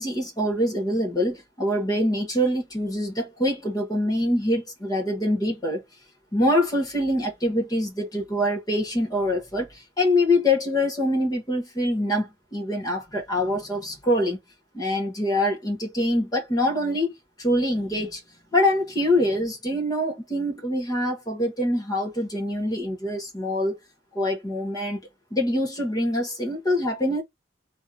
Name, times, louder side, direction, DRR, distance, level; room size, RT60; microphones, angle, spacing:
voice 1, 0.0-5.8 6.3-14.4 14.7-18.2 18.5-23.8 24.1-25.0 25.3-27.2, left 1 dB, 20° left, 1.6 m, -24 dB
3.4 x 2.8 x 3.9 m
head